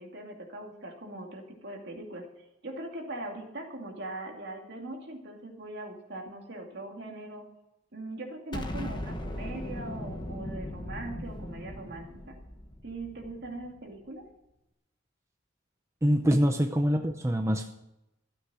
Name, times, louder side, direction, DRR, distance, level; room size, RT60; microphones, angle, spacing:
voice 1, 0.0-2.3 2.6-7.4 7.9-12.4 12.8-14.3, right 2 dB, 60° right, 2 dB, 2.5 m, -41 dB
Explosion, 8.5-13.7, left 1 dB, 25° left, 1.2 m, -38 dB
voice 2, 16.0-17.7, equal, 15° right, 5 dB, 0.6 m, -25 dB
13.0 x 8.8 x 6.2 m, 0.90 s
head